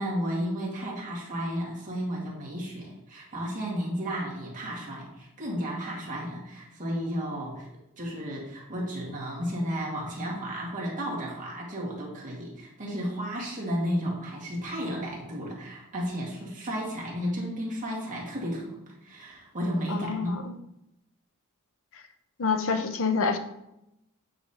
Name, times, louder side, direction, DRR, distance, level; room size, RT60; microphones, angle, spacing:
voice 1, 0.0-7.7 8.0-20.3, equal, 35° right, -4 dB, 2.0 m, -33 dB
voice 2, 19.9-20.5 22.4-23.4, left 4 dB, 60° left, 8 dB, 0.7 m, -27 dB
8.7 x 5.0 x 2.9 m, 0.86 s
head